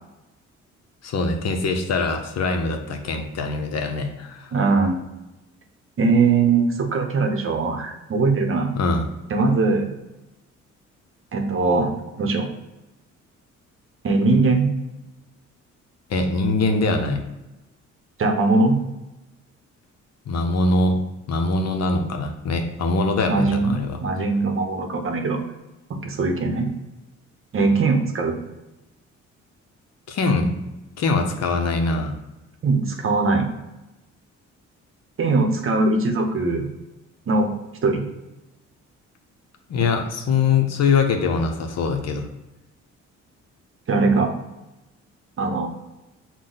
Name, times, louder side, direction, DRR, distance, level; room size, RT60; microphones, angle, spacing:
voice 1, 1.0-4.5 8.7-9.1 16.1-17.2 20.3-21.0 21.3-24.0 30.1-30.5 31.0-32.1 39.7-42.2, left 3 dB, 60° left, 5 dB, 0.7 m, -22 dB
voice 2, 4.5-5.0 6.0-8.7 9.3-9.9 11.3-11.9 12.2-12.5 14.0-14.7 18.2-18.8 23.3-25.4 26.0-26.7 27.5-28.4 32.6-33.4 35.2-36.7 37.3-37.5 37.8-38.0 43.9-44.3 45.4-45.7, right 3 dB, 45° right, 4 dB, 0.8 m, -20 dB
6.0 x 2.2 x 3.8 m, 0.99 s
cardioid pair, 90°, 30 cm